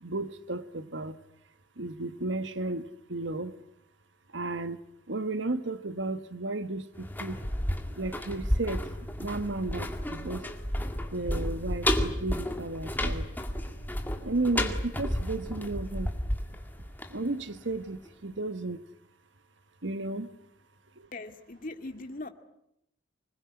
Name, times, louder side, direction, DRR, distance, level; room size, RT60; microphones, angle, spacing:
voice 1, 0.0-1.2 1.8-3.5 4.3-4.8 5.1-7.4 7.9-8.9 9.2-10.4 11.1-13.3 14.2-16.1 17.1-18.8 19.8-20.3 21.0-21.1, right 2 dB, 80° right, 12 dB, 1.5 m, -33 dB
sound 1, 6.9-17.8 18.1-18.2, left 1 dB, 10° left, 2.1 m, -32 dB
sound 2, 8.7-17.0, equal, 40° right, 4.7 m, -47 dB
voice 2, 21.1-22.3, left 2 dB, 45° left, 7 dB, 2.2 m, -40 dB
25.5 x 21.0 x 9.9 m, 0.80 s
head